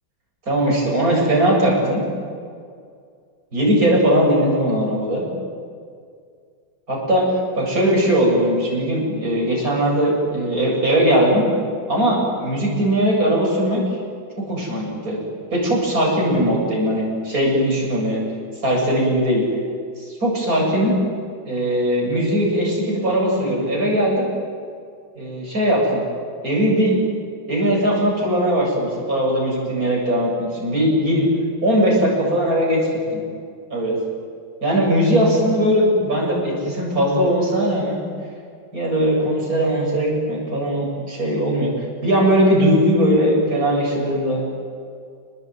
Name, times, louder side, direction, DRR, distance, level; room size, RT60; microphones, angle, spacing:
voice 1, 0.5-2.0 3.5-5.3 6.9-7.3 7.5-11.4 11.9-13.8 14.4-15.2 15.5-18.2 18.6-19.4 20.0-20.9 21.4-24.3 25.1-26.1 26.4-27.0 27.5-31.3 31.6-33.2 33.7-34.0 34.6-38.0 38.7-44.4, equal, 45° right, -2 dB, 8.4 m, -19 dB
29.5 x 20.5 x 9.4 m, 2.2 s
omnidirectional pair, 2.1 m